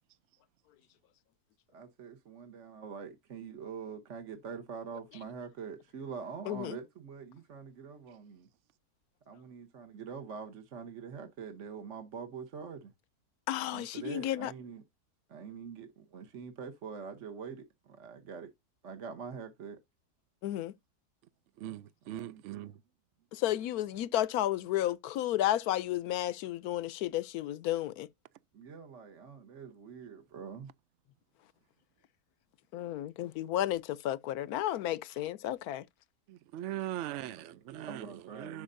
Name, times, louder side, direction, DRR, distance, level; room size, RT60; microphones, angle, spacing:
voice 1, 1.7-8.5 9.3-12.9 13.7-14.8 15.3-18.5 18.8-19.8 21.6-21.8 22.1-22.7 28.5-30.7 37.3-38.6, right 6 dB, 50° right, 1.3 m, -44 dB
voice 2, 6.5-6.8 13.5-14.5 20.4-20.7 23.3-28.1 32.7-35.8, left 13 dB, 75° left, 1.1 m, -32 dB
voice 3, 21.6-22.8 36.3-38.6, right 13 dB, 65° right, 0.7 m, -40 dB
11.0 x 5.2 x 2.6 m
omnidirectional pair, 1.7 m